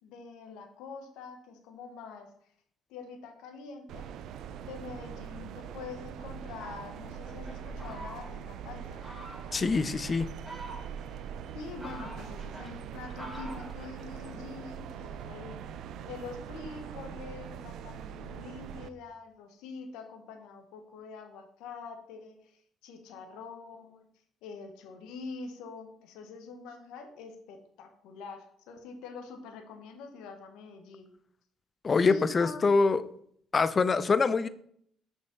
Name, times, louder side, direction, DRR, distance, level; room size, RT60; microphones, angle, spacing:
voice 1, 0.0-2.3 2.9-4.1 4.6-9.1 11.5-15.5 16.1-24.1 24.4-31.1 32.1-32.7, left 4 dB, 75° left, 5 dB, 1.2 m, -45 dB
sound 1, 3.9-18.9, right 8 dB, 65° right, 0.5 m, -42 dB
Fowl, 6.5-8.5 9.0-9.6 10.2-11.2 11.6-14.4, right 1 dB, ahead, 2.8 m, -46 dB
voice 2, 9.5-10.3 31.8-33.0 33.5-34.5, left 4 dB, 40° left, 14 dB, 0.6 m, -24 dB
6.2 x 5.5 x 5.8 m, 0.65 s
hypercardioid pair, 50°, 0 cm